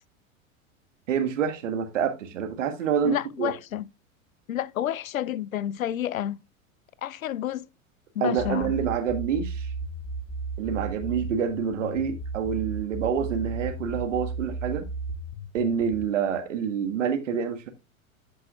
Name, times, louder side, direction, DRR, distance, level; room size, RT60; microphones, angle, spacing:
voice 1, 1.1-3.5 8.2-9.7 10.6-14.8 15.5-17.7, right 7 dB, 60° right, 1.7 m, -27 dB
voice 2, 3.0-3.8 4.5-6.4 7.0-7.6 8.2-8.8, left 11 dB, 75° left, 0.5 m, -30 dB
sound 1, 8.4-16.0, right 3 dB, 25° left, 1.3 m, -34 dB
13.5 x 5.4 x 2.3 m
figure-of-eight pair, 90°, 42 cm